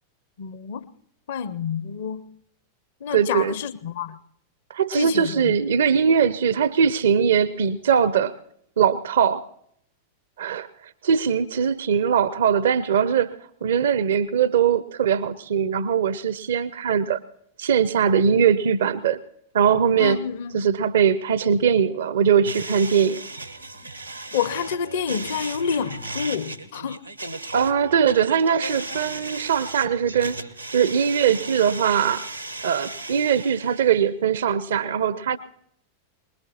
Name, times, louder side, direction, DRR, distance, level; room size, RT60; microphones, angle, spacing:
voice 1, 0.4-0.9 1.3-2.4 3.0-4.2 4.9-5.6 20.0-20.6 24.3-27.1, left 7 dB, 55° left, 0.6 m, -28 dB
voice 2, 3.1-3.6 4.7-8.3 8.8-9.4 10.4-10.7 11.0-17.2 17.6-19.2 19.5-20.2 20.5-23.2 27.5-30.4 30.7-32.3 32.6-35.4, right 7 dB, 60° right, 0.5 m, -21 dB
sound 1, 22.4-34.0, right 2 dB, 85° right, 1.0 m, -36 dB
23.5 x 20.5 x 2.9 m
figure-of-eight pair, 90°, 0 cm